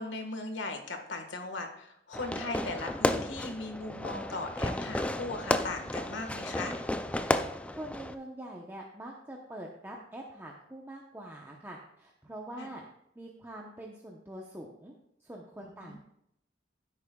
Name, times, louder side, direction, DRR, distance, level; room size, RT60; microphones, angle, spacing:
voice 1, 0.0-6.8 12.6-12.7 15.6-16.0, left 2 dB, 85° left, 5 dB, 1.5 m, -38 dB
Fireworks, 2.1-8.1, left 1 dB, 5° left, 0.4 m, -33 dB
voice 2, 7.7-12.8 13.1-14.9 15.2-16.0, right 1 dB, 10° right, -1 dB, 0.8 m, -44 dB
15.0 x 8.3 x 2.3 m, 0.76 s
head